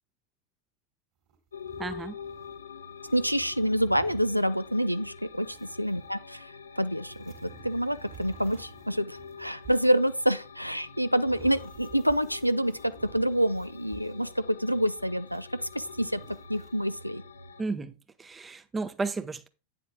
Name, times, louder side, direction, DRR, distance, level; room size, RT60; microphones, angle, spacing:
sound 1, 1.3-2.6 2.9-6.1 6.8-14.5 14.9-17.0, right 5 dB, 40° right, 2.8 m, -51 dB
sound 2, 1.5-17.6, left 5 dB, 75° left, 0.8 m, -46 dB
voice 1, 1.8-2.2 17.6-19.5, right 3 dB, 15° right, 0.8 m, -33 dB
voice 2, 3.1-17.2, equal, 90° right, 0.4 m, -27 dB
9.0 x 7.8 x 3.5 m
figure-of-eight pair, 90°, 0 cm